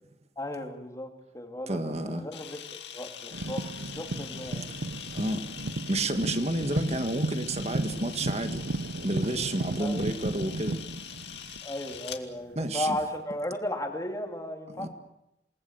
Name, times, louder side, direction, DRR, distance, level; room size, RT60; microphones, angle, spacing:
voice 1, 0.4-2.6 2.9-3.6 4.0-4.7 9.8-10.0 11.6-14.9, left 1 dB, 20° left, 2.7 m, -35 dB
voice 2, 1.7-2.2 5.1-5.5 5.9-8.6 9.0-10.8 12.6-13.0 14.8-14.9, right 1 dB, 35° right, 1.9 m, -30 dB
Camera, 2.3-12.2, left 9 dB, 70° left, 2.3 m, -43 dB
sound 1, 3.3-12.1 13.0-13.1, right 2 dB, 65° right, 0.8 m, -34 dB
28.0 x 19.5 x 8.0 m
head